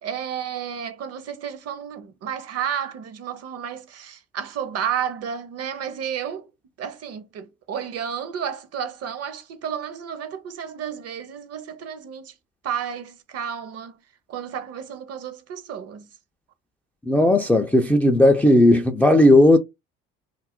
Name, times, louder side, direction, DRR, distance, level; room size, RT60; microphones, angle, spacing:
voice 1, 0.0-6.5 6.8-12.3 12.6-14.0 14.3-16.1, right 8 dB, 45° right, 0.7 m, -32 dB
voice 2, 17.1-19.6, left 1 dB, 5° left, 0.3 m, -15 dB
2.4 x 2.0 x 3.6 m
hypercardioid pair, 70°, 34 cm